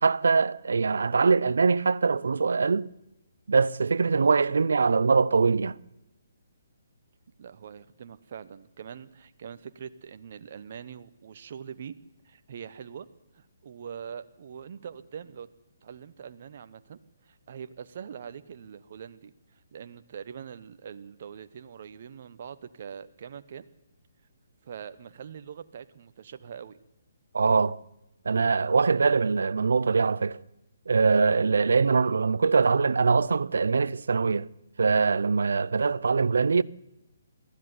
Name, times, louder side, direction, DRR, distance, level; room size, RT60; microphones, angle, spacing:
voice 1, 0.0-2.9 3.5-5.8 27.3-27.8 28.2-30.4 30.9-34.5 34.8-36.6, right 4 dB, 75° right, 0.6 m, -23 dB
voice 2, 7.4-12.0 12.2-13.1 13.3-15.5 15.8-23.7 24.6-26.8, right 7 dB, 55° right, 1.0 m, -43 dB
20.5 x 13.5 x 9.7 m
hypercardioid pair, 145°, 0 cm